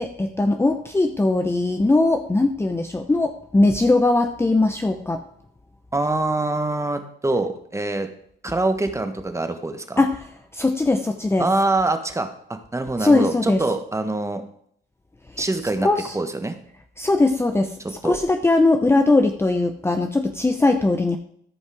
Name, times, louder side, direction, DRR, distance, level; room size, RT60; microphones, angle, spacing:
voice 1, 0.0-5.2 10.0-10.2 10.5-11.4 13.0-13.6 15.8-16.1 17.0-17.7 18.0-21.2, left 2 dB, 10° left, 6 dB, 0.7 m, -20 dB
voice 2, 5.9-8.1 8.4-10.0 11.4-14.4 15.4-15.9 16.1-16.6 17.8-18.2, right 2 dB, 15° right, 7 dB, 1.3 m, -24 dB
14.0 x 5.4 x 4.8 m, 0.66 s
cardioid pair, 90°, 20 cm